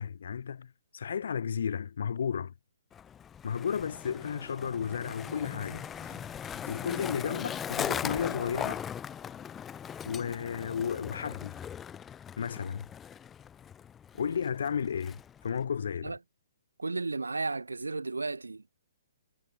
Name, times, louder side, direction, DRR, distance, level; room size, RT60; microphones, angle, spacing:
voice 1, 0.0-2.5 3.4-5.9 6.7-8.8 10.0-11.6 12.4-12.9 14.2-16.1, left 7 dB, 60° left, 0.8 m, -33 dB
Skateboard, 2.9-15.6, left 8 dB, 15° left, 0.4 m, -39 dB
Organ, 4.8-10.4, left 4 dB, 75° left, 5.5 m, -56 dB
voice 2, 16.8-18.7, right 3 dB, 80° right, 0.6 m, -33 dB
figure-of-eight pair, 125°, 0 cm